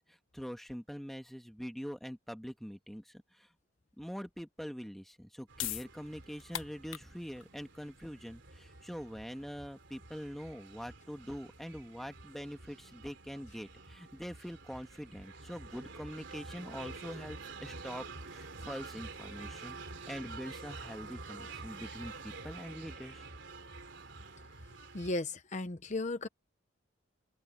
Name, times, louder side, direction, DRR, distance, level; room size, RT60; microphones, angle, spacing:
voice 1, 0.0-3.5 4.0-23.2, equal, ahead, 1.6 m, -44 dB
sound 1, 5.1-11.9, left 12 dB, 85° left, 1.0 m, -45 dB
sound 2, 5.5-25.1, right 3 dB, 65° right, 3.9 m, -48 dB
voice 2, 24.9-26.3, left 2 dB, 40° left, 0.9 m, -35 dB
open air
head